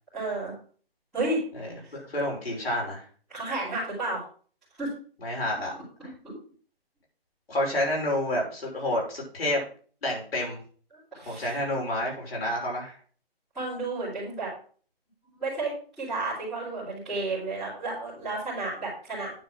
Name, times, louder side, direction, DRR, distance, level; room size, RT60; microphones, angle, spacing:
voice 1, 0.1-0.5 1.1-1.4 3.3-4.2 4.8-4.9 6.2-6.3 11.1-11.5 13.5-14.5 15.4-19.3, right 2 dB, ahead, -21 dB, 3.1 m, -31 dB
voice 2, 1.6-3.0 5.2-5.7 7.5-9.6 10.0-10.6 11.3-13.0, left 1 dB, 70° left, -2 dB, 5.6 m, -29 dB
9.5 x 4.6 x 6.0 m, 0.43 s
hypercardioid pair, 180°, 31 cm